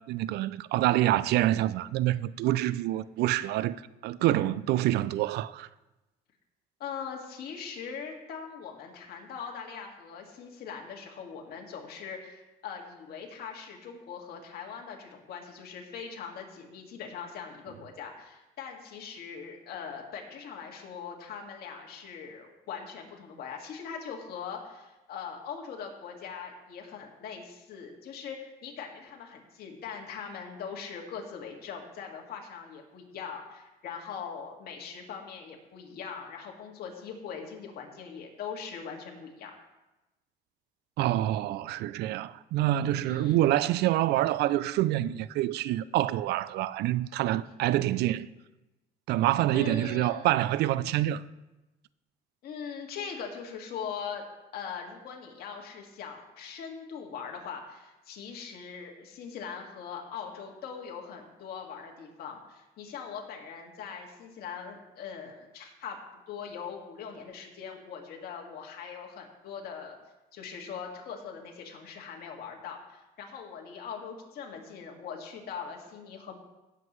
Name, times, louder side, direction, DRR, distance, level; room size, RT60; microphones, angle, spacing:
voice 1, 0.0-5.7 41.0-48.3 49.1-51.2, right 14 dB, 75° right, 0.4 m, -27 dB
voice 2, 6.8-39.5 43.0-43.4 49.5-50.3 52.4-54.2 54.5-66.0 66.3-70.0 70.3-76.3, left 6 dB, 65° left, 2.0 m, -41 dB
17.0 x 7.6 x 3.2 m
cardioid pair, 110°, 17 cm